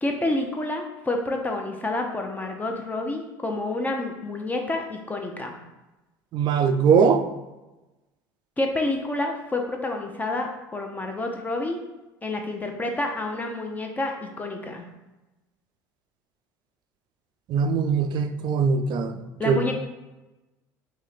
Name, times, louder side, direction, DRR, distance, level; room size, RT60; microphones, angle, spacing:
voice 1, 0.0-5.6 8.6-11.8 12.2-14.8 19.4-19.7, left 2 dB, 15° left, 3 dB, 0.7 m, -28 dB
voice 2, 6.3-7.2 17.5-19.7, right 6 dB, 50° right, 8 dB, 0.4 m, -21 dB
3.0 x 2.9 x 4.0 m, 1.1 s
hypercardioid pair, 75°, 10 cm